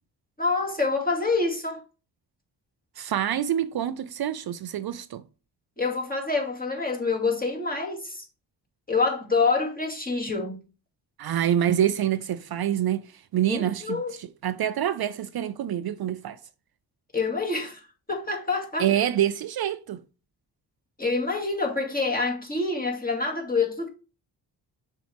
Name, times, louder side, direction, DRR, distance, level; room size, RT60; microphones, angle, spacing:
voice 1, 0.4-1.8 5.8-8.2 8.9-10.6 13.5-14.1 17.1-17.8 18.1-18.9 21.0-23.9, left 3 dB, 20° left, 2.3 m, -26 dB
voice 2, 3.0-5.2 11.2-16.4 18.8-20.0, right 10 dB, 60° right, 0.5 m, -26 dB
6.3 x 4.5 x 3.4 m
cardioid pair, 60°, 44 cm